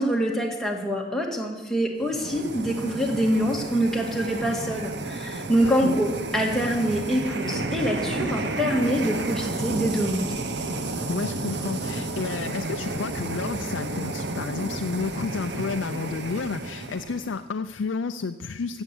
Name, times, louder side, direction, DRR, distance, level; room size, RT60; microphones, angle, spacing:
voice 1, 0.0-10.3, equal, ahead, -1 dB, 1.9 m, -25 dB
sound 1, 2.0-17.4, right 2 dB, 60° right, 1.0 m, -32 dB
voice 2, 5.6-6.0 11.1-18.8, left 4 dB, 85° left, 7 dB, 0.5 m, -31 dB
15.0 x 7.3 x 8.2 m, 1.2 s
head